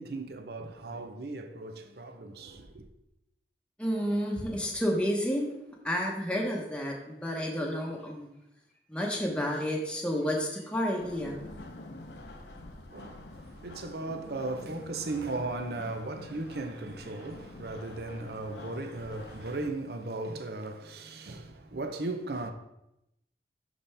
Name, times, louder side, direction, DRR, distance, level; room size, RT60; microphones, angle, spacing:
voice 1, 0.0-2.9 12.9-22.5, right 2 dB, 65° right, 0.7 m, -37 dB
voice 2, 3.8-5.5 5.8-8.3 8.9-11.4, equal, 5° left, 0.9 m, -30 dB
sound 1, 11.0-19.7, left 2 dB, 75° left, 0.8 m, -47 dB
11.0 x 4.2 x 3.4 m
head